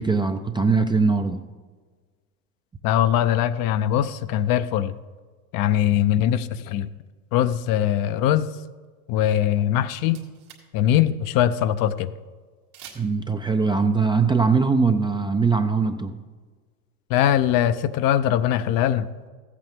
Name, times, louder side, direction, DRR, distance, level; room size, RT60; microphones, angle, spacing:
voice 1, 0.0-1.4 13.0-16.2, right 4 dB, 10° right, 6 dB, 0.4 m, -21 dB
voice 2, 2.8-4.9 5.5-6.9 7.3-8.5 9.1-10.2 10.7-12.1 17.1-19.1, left 11 dB, 50° left, 13 dB, 0.6 m, -21 dB
sound 1, 9.5-9.6 9.8-10.8 11.1-11.2 12.7-13.3, right 8 dB, 80° right, 2.1 m, -46 dB
14.5 x 8.3 x 3.6 m, 1.4 s
hypercardioid pair, 85°, 43 cm